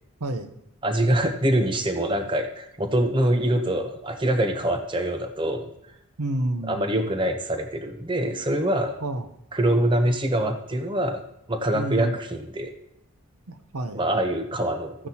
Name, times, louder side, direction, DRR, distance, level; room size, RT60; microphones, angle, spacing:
voice 1, 0.2-0.5 6.2-6.9 8.2-8.4 9.0-9.3 11.7-12.2 13.5-14.0, right 1 dB, 90° right, 8 dB, 0.8 m, -29 dB
voice 2, 0.8-5.7 6.6-8.9 9.5-11.2 11.5-12.7 13.9-15.1, right 1 dB, 20° right, 6 dB, 0.7 m, -24 dB
13.5 x 9.6 x 2.9 m, 0.77 s
head